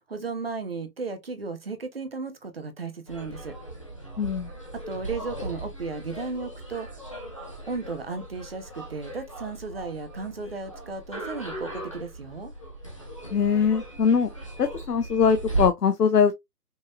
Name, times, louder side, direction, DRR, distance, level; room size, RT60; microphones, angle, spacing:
voice 1, 0.1-3.5 4.7-6.9 7.7-12.5, right 4 dB, 35° right, 0.8 m, -35 dB
sound 1, 3.1-15.7, right 2 dB, 20° left, 0.7 m, -37 dB
voice 2, 4.2-4.5 13.3-14.3 14.6-16.3, left 6 dB, 70° left, 0.8 m, -22 dB
5.4 x 2.9 x 2.4 m
hypercardioid pair, 165°, 49 cm